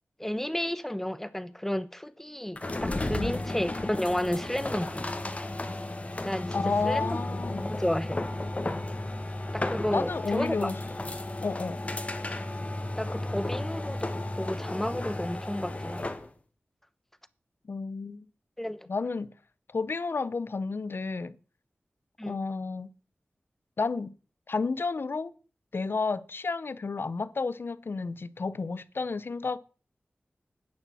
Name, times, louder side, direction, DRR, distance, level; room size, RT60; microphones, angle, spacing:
voice 1, 0.2-5.1 6.2-6.5 6.8-7.2 7.6-8.2 9.5-10.7 13.0-14.1 14.4-16.0 18.6-18.9 22.2-22.4, left 1 dB, 10° left, 1.0 m, -32 dB
sound 1, 2.6-16.3, left 1 dB, 35° left, 1.7 m, -34 dB
voice 2, 6.5-7.7 9.9-10.8 11.4-11.8 17.7-18.3 18.9-19.3 19.7-21.3 22.3-22.9 23.8-24.1 24.5-25.3 25.7-29.6, left 4 dB, 65° left, 0.8 m, -31 dB
10.5 x 9.7 x 6.2 m
wide cardioid pair, 85°, 4 cm